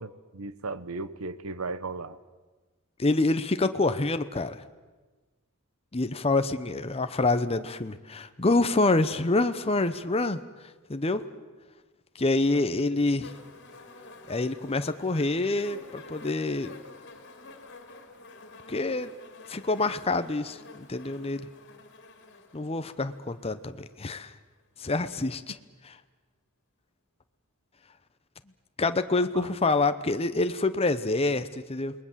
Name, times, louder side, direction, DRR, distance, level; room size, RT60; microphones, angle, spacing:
voice 1, 0.0-2.2 29.1-29.5, right 3 dB, 75° right, 14 dB, 1.1 m, -36 dB
voice 2, 3.0-4.6 5.9-10.4 10.9-11.2 12.2-13.3 14.3-16.7 18.7-19.1 19.5-20.6 20.9-21.5 22.5-24.3 24.8-25.5 28.8-31.9, left 2 dB, 25° left, 10 dB, 0.8 m, -26 dB
sound 1, 13.2-24.3 25.2-25.3, left 3 dB, 55° left, 2.9 m, -50 dB
28.5 x 20.5 x 7.4 m, 1.3 s
head